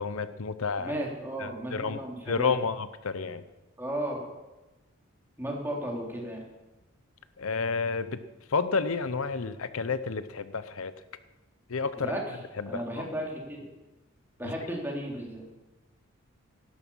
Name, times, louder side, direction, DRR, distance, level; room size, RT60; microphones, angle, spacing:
voice 1, 0.0-0.9 1.4-2.0 2.3-3.4 7.4-8.2 8.5-10.9 11.7-12.2 12.6-13.1 14.4-14.5, left 5 dB, 75° left, 13 dB, 0.7 m, -30 dB
voice 2, 0.8-2.5 3.8-4.2 5.4-6.4 12.0-12.2 12.7-13.6 14.4-15.5, right 1 dB, 10° right, -2 dB, 3.3 m, -34 dB
17.5 x 13.5 x 5.5 m, 1.1 s
head